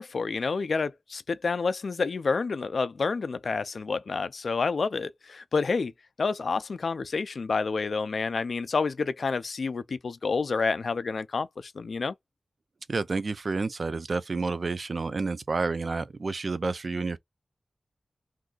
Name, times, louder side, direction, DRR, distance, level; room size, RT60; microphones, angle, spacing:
voice 1, 0.0-5.9 6.2-12.1, left 4 dB, 75° left, 0.4 m, -29 dB
voice 2, 12.9-17.2, right 3 dB, 60° right, 0.4 m, -30 dB
2.6 x 2.4 x 3.8 m
wide cardioid pair, 70°, 0 cm